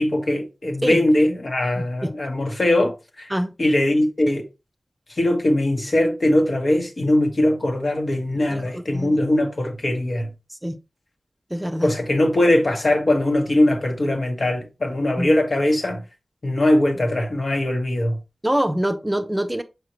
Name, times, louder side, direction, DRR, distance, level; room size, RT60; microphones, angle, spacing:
voice 1, 0.0-3.3 3.6-4.4 5.2-10.3 11.8-16.0 16.4-18.2, left 1 dB, 60° left, 1.4 m, -21 dB
voice 2, 1.8-2.1 3.3-3.5 8.5-9.2 10.5-10.8 11.5-11.9 15.2-15.4 17.0-17.1 18.4-19.6, right 1 dB, 15° right, 0.6 m, -25 dB
6.3 x 4.9 x 3.0 m
wide cardioid pair, 50°, 0 cm